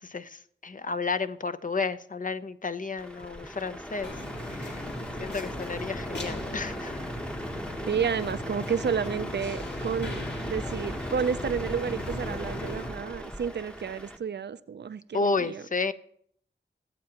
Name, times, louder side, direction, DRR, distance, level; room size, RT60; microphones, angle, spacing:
voice 1, 0.6-4.1 4.5-4.8 5.2-7.0 15.1-15.9, left 4 dB, 45° left, 12 dB, 0.6 m, -31 dB
Truck, 3.0-14.2, equal, 5° left, 0.9 m, -38 dB
sound 1, 4.0-12.9, left 1 dB, 60° left, 2.1 m, -38 dB
voice 2, 7.9-15.6, right 7 dB, 60° right, 14 dB, 0.5 m, -31 dB
18.5 x 7.4 x 2.9 m, 0.64 s
cardioid pair, 40°, 20 cm